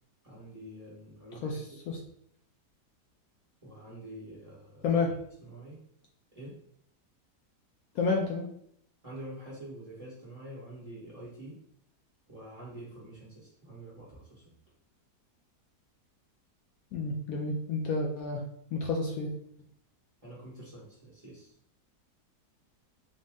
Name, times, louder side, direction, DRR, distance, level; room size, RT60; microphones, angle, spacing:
voice 1, 0.2-1.8 3.6-5.0 5.4-5.8 6.3-6.6 9.0-11.6 12.3-14.5 20.2-21.5, right 1 dB, 25° right, -7 dB, 1.0 m, -46 dB
voice 2, 1.4-2.0 4.8-5.1 7.9-8.5 16.9-18.4 18.7-19.3, left 4 dB, 70° left, 0 dB, 0.9 m, -30 dB
3.8 x 2.1 x 3.4 m, 0.68 s
omnidirectional pair, 1.7 m